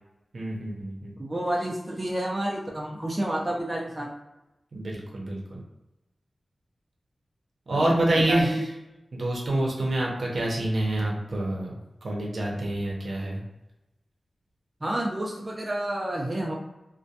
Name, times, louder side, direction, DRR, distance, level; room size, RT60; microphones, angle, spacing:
voice 1, 0.3-1.1 4.7-5.6 7.7-8.7 9.1-11.8 12.0-13.4, right 1 dB, 70° right, -3 dB, 0.7 m, -27 dB
voice 2, 1.2-4.1 7.7-8.6 14.8-16.5, right 1 dB, 30° right, -2 dB, 0.4 m, -30 dB
2.2 x 2.1 x 2.7 m, 0.97 s
wide cardioid pair, 65°, 0 cm